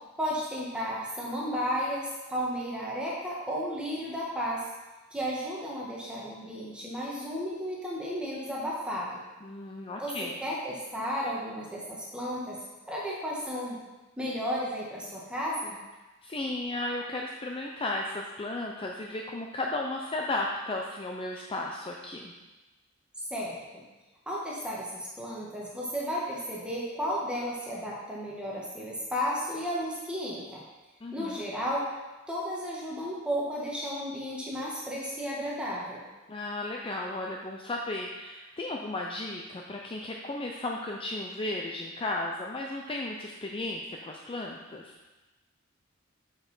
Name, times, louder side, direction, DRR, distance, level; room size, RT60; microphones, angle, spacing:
voice 1, 0.2-4.7 5.1-9.2 10.0-12.6 12.9-13.8 14.2-15.8 23.3-23.8 24.3-30.6 31.1-31.9 32.3-36.1, equal, 5° right, -6 dB, 1.4 m, -33 dB
voice 2, 9.4-10.4 16.2-22.3 31.0-31.4 36.3-45.0, left 2 dB, 25° left, 0 dB, 0.5 m, -34 dB
6.5 x 5.6 x 5.5 m, 1.1 s
head